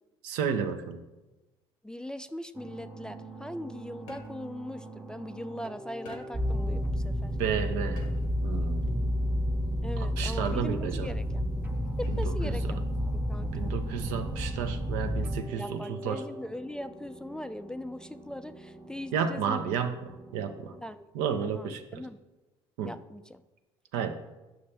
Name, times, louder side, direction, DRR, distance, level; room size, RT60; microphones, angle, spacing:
voice 1, 0.2-1.0 7.4-8.1 8.4-9.3 10.0-11.1 12.2-12.7 13.5-16.2 19.1-20.7 21.1-22.0 22.8-22.9 23.9-24.1, right 7 dB, 80° right, 7 dB, 0.7 m, -32 dB
voice 2, 1.8-7.4 9.8-11.4 12.0-13.7 15.6-19.7 20.8-21.1 21.4-22.2 22.8-23.4, left 1 dB, 5° left, 10 dB, 0.3 m, -40 dB
sound 1, 2.5-20.8, right 2 dB, 10° right, 0.7 m, -46 dB
sound 2, 4.1-4.6 6.1-6.6 8.0-8.5 10.5-11.0 12.0-12.5 13.9-14.3, left 2 dB, 80° left, 0.9 m, -50 dB
sound 3, 6.3-15.4, equal, 30° right, 1.4 m, -30 dB
8.1 x 5.9 x 3.3 m, 1.1 s
hypercardioid pair, 65°, 14 cm